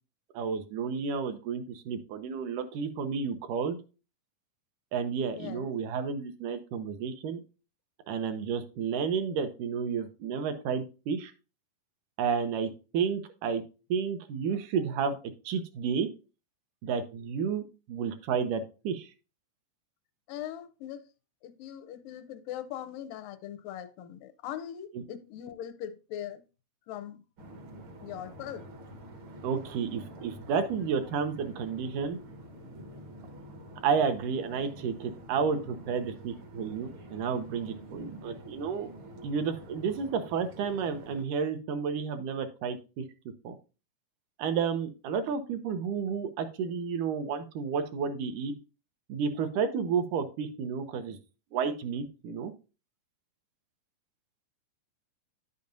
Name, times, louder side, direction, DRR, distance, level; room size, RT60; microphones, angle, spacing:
voice 1, 0.3-3.8 4.9-7.4 8.1-11.3 12.2-13.6 13.9-15.2 15.4-16.1 16.8-19.1 24.9-25.0 29.4-32.2 33.8-38.9 39.2-43.0 43.4-43.6 44.4-48.5 49.1-51.2 51.5-52.5, right 6 dB, 75° right, 2.3 m, -31 dB
voice 2, 5.3-5.7 20.3-21.1 21.4-26.4 26.9-27.2 28.0-28.7, left 10 dB, 90° left, 2.3 m, -40 dB
sound 1, 27.4-41.2, right 1 dB, 55° right, 1.5 m, -48 dB
10.5 x 7.0 x 2.6 m
omnidirectional pair, 3.8 m